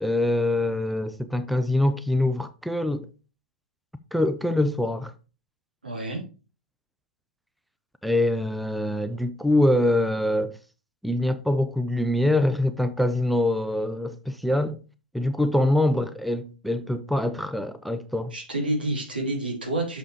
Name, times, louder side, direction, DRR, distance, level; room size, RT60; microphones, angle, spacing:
voice 1, 0.0-3.1 4.1-5.1 8.0-10.5 11.0-14.8 15.1-18.3, left 1 dB, ahead, 0.5 m, -24 dB
voice 2, 5.8-6.2 18.3-20.0, right 1 dB, 85° right, 3.3 m, -28 dB
6.6 x 5.5 x 4.7 m
figure-of-eight pair, 105°, 5 cm